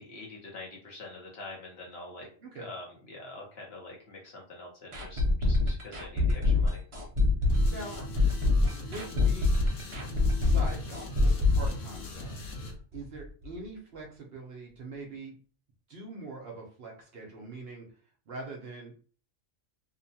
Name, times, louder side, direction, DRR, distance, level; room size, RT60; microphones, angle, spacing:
voice 1, 0.0-2.3 2.6-6.8, left 2 dB, 55° left, -1 dB, 1.0 m, -45 dB
sound 1, 4.9-12.7 12.9-13.0 13.4-13.5, left 3 dB, 40° right, 0.4 m, -25 dB
sound 2, 7.5-12.7, left 1 dB, 80° left, 1.1 m, -41 dB
voice 2, 7.5-8.0 8.7-9.5 10.4-12.3 12.9-15.3 15.9-18.0 18.3-18.9, right 3 dB, 60° right, 0 dB, 0.8 m, -43 dB
2.8 x 2.2 x 2.7 m, 0.42 s
omnidirectional pair, 1.3 m